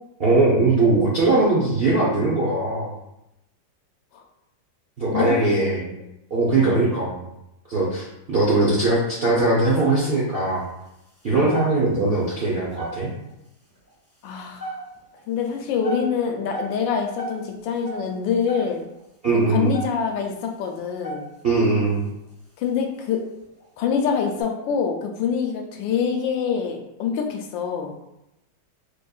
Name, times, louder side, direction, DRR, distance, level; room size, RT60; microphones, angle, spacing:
voice 1, 0.2-2.9 5.0-5.8 6.3-7.2 7.7-10.7 11.2-13.1 19.2-19.7 21.4-22.1, right 2 dB, 65° right, -6 dB, 0.5 m, -20 dB
voice 2, 5.1-6.0 6.6-6.9 11.4-11.7 14.2-14.8 15.3-18.8 19.5-21.3 22.6-23.2 23.8-27.9, left 6 dB, 80° left, 3 dB, 1.3 m, -25 dB
sound 1, 9.7-10.9 11.3-11.4 11.5-12.1 12.5-13.3 13.7-13.9 14.3-15.2 15.6-19.0 19.5-19.6 19.7-20.3 20.8-21.6 22.1-22.3 22.8-23.0 23.4-23.6 24.1-24.4, right 2 dB, 10° left, 0.9 m, -34 dB
4.4 x 3.2 x 2.3 m, 0.88 s
omnidirectional pair, 2.1 m